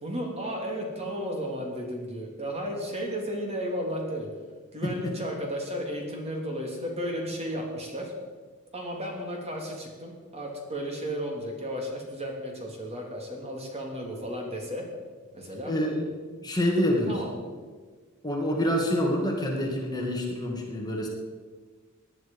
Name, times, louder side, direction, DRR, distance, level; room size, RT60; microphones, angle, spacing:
voice 1, 0.0-4.3 4.7-8.1 8.7-14.8 15.3-15.7 17.1-17.3, equal, 30° right, 0 dB, 3.0 m, -34 dB
voice 2, 4.8-5.1 15.7-16.1 16.4-17.2 18.2-21.1, equal, 20° left, -1 dB, 2.3 m, -27 dB
18.5 x 10.5 x 5.6 m, 1.4 s
head